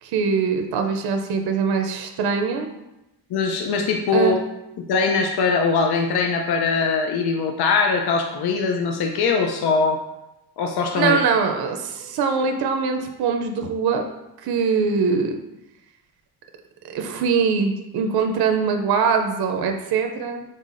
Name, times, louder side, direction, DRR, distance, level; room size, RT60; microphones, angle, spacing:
voice 1, 0.0-2.7 4.1-4.3 11.0-14.0 14.4-15.3 16.9-20.4, right 5 dB, 65° right, 5 dB, 0.5 m, -22 dB
voice 2, 3.3-4.4 4.8-10.0 10.6-11.2, left 4 dB, 70° left, 3 dB, 0.5 m, -21 dB
5.5 x 3.8 x 2.5 m, 0.93 s
wide cardioid pair, 160°, 40 cm